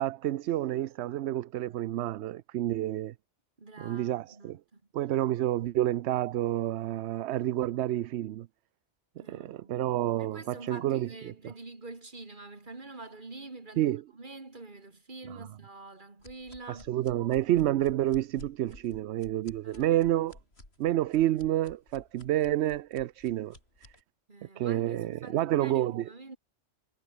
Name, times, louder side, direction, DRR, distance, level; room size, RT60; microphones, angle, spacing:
voice 1, 0.0-3.1 3.8-4.6 4.9-8.5 9.2-11.3 13.8-14.0 15.3-15.5 16.7-20.4 20.8-23.6 24.6-26.1, right 13 dB, 70° right, 0.8 m, -29 dB
voice 2, 3.6-4.8 9.2-9.7 10.2-17.0 19.6-20.0 24.3-26.4, right 3 dB, 40° right, 2.8 m, -46 dB
sound 1, 16.2-24.0, left 2 dB, 60° left, 5.6 m, -53 dB
omnidirectional pair, 1.2 m